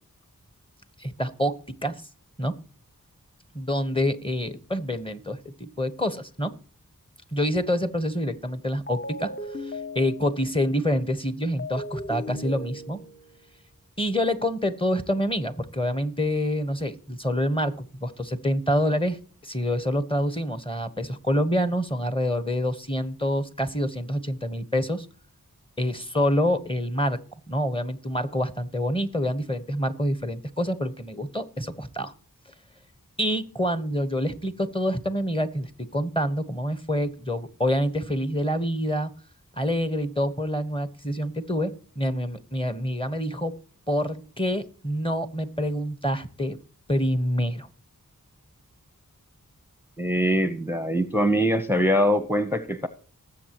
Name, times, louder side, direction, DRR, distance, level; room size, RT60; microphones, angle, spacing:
voice 1, 1.0-2.0 2.4-2.5 3.5-6.5 7.3-9.3 9.6-13.0 14.0-19.2 19.4-25.1 25.8-27.2 27.5-32.1 33.2-39.1 39.6-43.6 43.9-46.6 46.9-47.7, equal, 15° left, 12 dB, 1.2 m, -27 dB
sound 1, 8.9-10.6 11.6-13.3, left 1 dB, 30° left, 1.0 m, -37 dB
voice 2, 50.0-52.9, equal, 5° right, 11 dB, 0.8 m, -23 dB
19.5 x 7.7 x 3.0 m, 0.44 s
wide cardioid pair, 50°, 34 cm